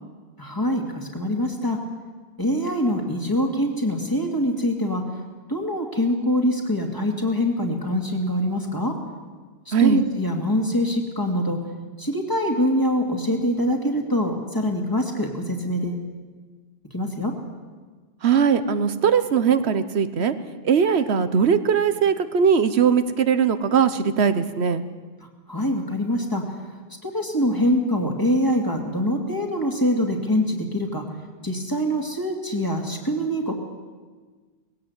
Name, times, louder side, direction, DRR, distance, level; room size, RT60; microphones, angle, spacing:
voice 1, 0.4-1.8 2.4-5.0 5.5-8.9 9.7-11.6 12.0-16.0 16.9-17.3 25.5-26.4 27.0-31.1 31.4-33.5, equal, 20° left, 2 dB, 2.5 m, -24 dB
voice 2, 9.7-10.0 18.2-20.3 20.6-24.8, right 7 dB, 90° right, 11 dB, 1.2 m, -20 dB
19.5 x 16.5 x 8.1 m, 1.4 s
omnidirectional pair, 1.1 m